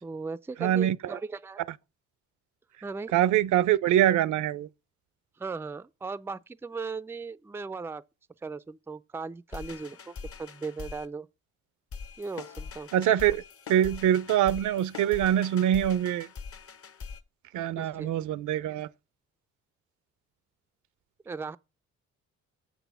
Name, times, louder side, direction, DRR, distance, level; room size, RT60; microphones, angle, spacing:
voice 1, 0.0-1.6 2.8-3.1 5.4-8.0 8.4-11.3 12.2-12.9 17.8-18.1 21.3-21.6, right 4 dB, 10° right, 0.4 m, -37 dB
voice 2, 0.6-1.2 3.1-4.7 12.9-13.4 13.7-16.3 17.5-18.9, right 11 dB, 75° right, 0.6 m, -24 dB
sound 1, 9.5-11.1 11.9-17.2, left 5 dB, 50° left, 1.0 m, -43 dB
7.1 x 6.2 x 6.9 m
cardioid pair, 90°, 30 cm